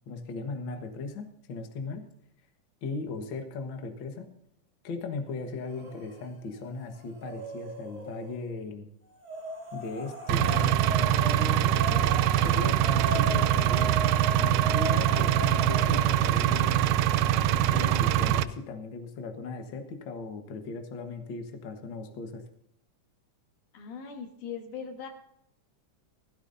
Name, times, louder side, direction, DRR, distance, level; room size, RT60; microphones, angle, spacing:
voice 1, 0.1-2.1 2.8-4.3 4.8-8.9 9.7-12.1 12.4-14.0 14.3-16.9 17.3-22.4, left 3 dB, 50° left, 5 dB, 1.7 m, -37 dB
sound 1, 5.7-6.3 6.6-8.4 9.2-16.4, right 1 dB, 20° right, 4.2 m, -38 dB
Engine, 10.3-18.4, right 11 dB, 85° right, 2.1 m, -24 dB
voice 2, 23.7-25.1, left 6 dB, 80° left, 4 dB, 3.1 m, -39 dB
16.5 x 15.0 x 2.7 m, 0.74 s
omnidirectional pair, 3.6 m